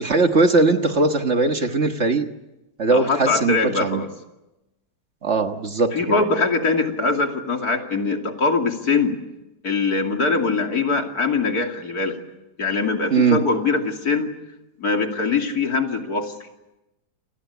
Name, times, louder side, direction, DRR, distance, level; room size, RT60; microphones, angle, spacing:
voice 1, 0.0-2.3 2.8-4.0 5.2-6.3 13.1-13.4, right 3 dB, 45° right, 6 dB, 1.7 m, -20 dB
voice 2, 2.9-4.1 5.9-9.2 9.6-12.2 12.6-14.3 14.8-16.3, left 4 dB, 65° left, 3 dB, 3.2 m, -22 dB
29.5 x 21.0 x 8.3 m, 0.98 s
omnidirectional pair, 1.7 m